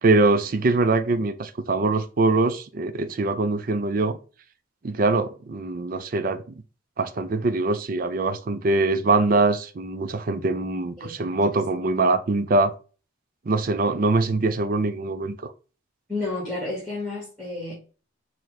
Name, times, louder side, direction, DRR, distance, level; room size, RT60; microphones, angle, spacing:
voice 1, 0.0-4.2 4.8-6.4 7.0-12.7 13.5-15.5, right 3 dB, 45° right, 0.4 m, -23 dB
voice 2, 11.0-11.6 16.1-17.7, left 2 dB, 5° left, 1.5 m, -32 dB
4.5 x 2.1 x 4.7 m
head